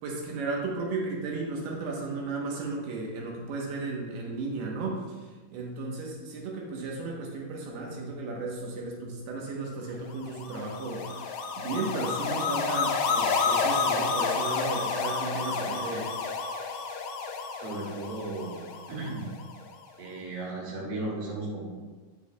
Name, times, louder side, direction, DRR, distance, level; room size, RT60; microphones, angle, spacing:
voice 1, 0.0-5.3 5.5-16.1, right 3 dB, 85° right, -1 dB, 3.1 m, -34 dB
sound 1, 10.2-19.5, left 5 dB, 80° left, 2.3 m, -30 dB
voice 2, 17.6-18.6 18.9-19.3 20.0-21.7, right 2 dB, 50° right, -4 dB, 2.4 m, -35 dB
8.6 x 7.4 x 2.3 m, 1.3 s
omnidirectional pair, 4.4 m